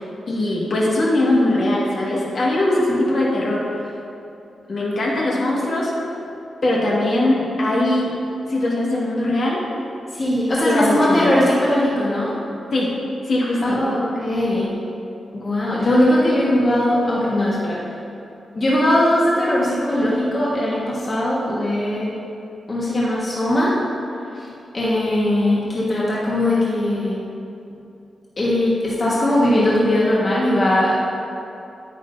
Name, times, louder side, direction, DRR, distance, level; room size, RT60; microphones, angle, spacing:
voice 1, 0.0-3.8 4.7-5.9 6.6-8.1 8.5-9.6 10.6-11.4 12.7-12.9 13.2-13.8, left 1 dB, 55° left, -5 dB, 1.7 m, -20 dB
voice 2, 10.1-12.3 13.6-14.7 15.3-17.8 18.5-22.1 22.7-23.7 24.4-24.5 24.7-27.2 28.4-31.0, left 1 dB, 35° left, -7 dB, 1.5 m, -19 dB
9.8 x 9.0 x 2.7 m, 2.7 s
wide cardioid pair, 125°, 0 cm